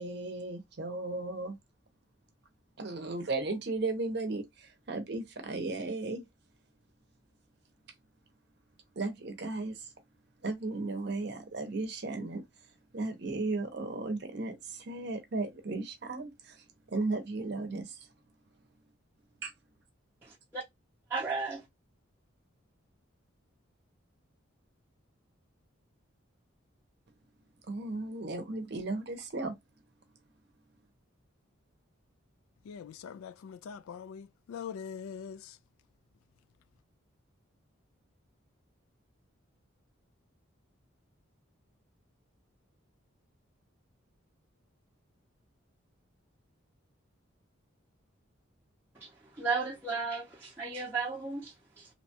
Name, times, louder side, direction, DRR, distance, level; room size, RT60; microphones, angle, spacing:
voice 1, 0.0-1.6 2.8-6.2 9.0-9.9 10.4-12.4 12.9-18.0 19.4-19.5 27.7-29.5, right 3 dB, 50° right, 0.7 m, -35 dB
voice 2, 20.2-20.6 21.1-21.6 48.9-51.9, right 4 dB, 10° right, 0.6 m, -35 dB
voice 3, 32.6-35.6, left 7 dB, 90° left, 0.3 m, -43 dB
2.9 x 2.2 x 2.8 m
head